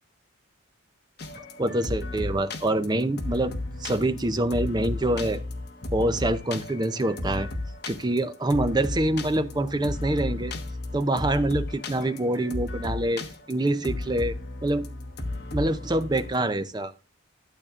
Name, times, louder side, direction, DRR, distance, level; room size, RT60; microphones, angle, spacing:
sound 1, 1.2-16.4, left 2 dB, 50° left, 1.2 m, -34 dB
voice 1, 1.4-3.5 3.8-5.4 5.9-7.5 7.9-10.5 10.9-14.4 14.6-14.9 15.5-16.9, right 1 dB, 20° right, 10 dB, 0.5 m, -26 dB
12.5 x 8.2 x 2.5 m, 0.33 s
head